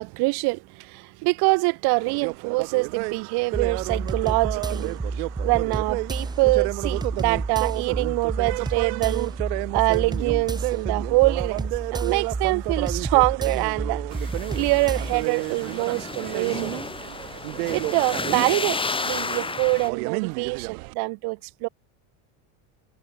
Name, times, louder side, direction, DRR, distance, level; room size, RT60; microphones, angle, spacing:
voice 1, 0.0-9.3 9.7-16.7 17.7-21.7, right 27 dB, 55° right, 1.5 m, -25 dB
sound 1, 2.0-20.9, right 28 dB, 75° right, 1.8 m, -32 dB
sound 2, 3.5-15.2, right 3 dB, 10° right, 1.6 m, -30 dB
sound 3, 14.1-19.9, left 4 dB, 10° left, 2.2 m, -32 dB
cardioid pair, 150°, 48 cm